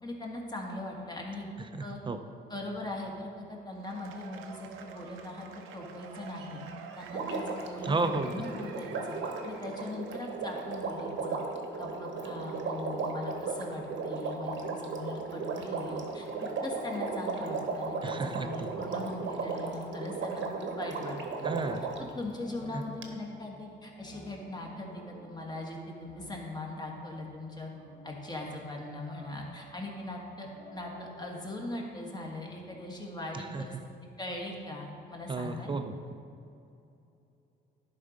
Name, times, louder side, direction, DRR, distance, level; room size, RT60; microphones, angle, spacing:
voice 1, 0.0-1.5 1.8-2.0 2.5-5.5 5.7-6.6 6.9-9.2 9.4-11.4 11.8-16.3 16.6-21.6 22.0-27.7 28.0-33.8 34.2-35.7, left 2 dB, 20° left, -1 dB, 1.6 m, -40 dB
Cheering / Applause / Crowd, 3.7-10.5, right 5 dB, 90° right, 0.7 m, -48 dB
Water, 7.1-22.1 23.0-23.1, right 4 dB, 70° right, 1.0 m, -36 dB
voice 2, 7.8-8.4 18.0-18.7 21.4-21.8 22.7-22.8 33.5-33.6 35.3-36.0, right 3 dB, 25° right, 9 dB, 0.6 m, -32 dB
sound 1, 21.5-26.9 27.7-31.4, equal, 50° left, 1.9 m, -53 dB
11.0 x 4.2 x 5.0 m, 2.7 s
cardioid pair, 90°, 20 cm